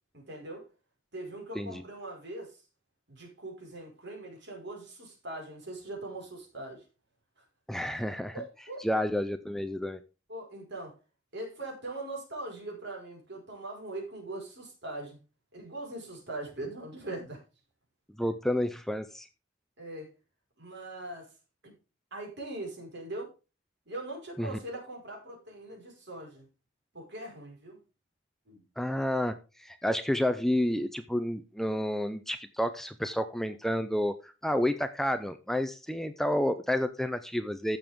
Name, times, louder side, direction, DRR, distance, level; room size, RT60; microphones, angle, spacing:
voice 1, 0.1-0.7 1.1-2.6 3.1-6.8 7.4-7.5 8.3-8.9 10.3-11.0 11.3-15.2 15.5-17.4 18.2-18.3 19.8-20.1 20.6-21.3 21.6-21.7 22.1-23.3 23.9-26.5 26.9-27.8 28.5-28.6, right 2 dB, 55° right, 1 dB, 5.0 m, -41 dB
voice 2, 7.7-8.3 8.8-10.0 18.2-19.3 24.4-24.6 28.8-37.8, left 1 dB, ahead, 9 dB, 0.5 m, -30 dB
15.0 x 6.9 x 3.6 m, 0.31 s
head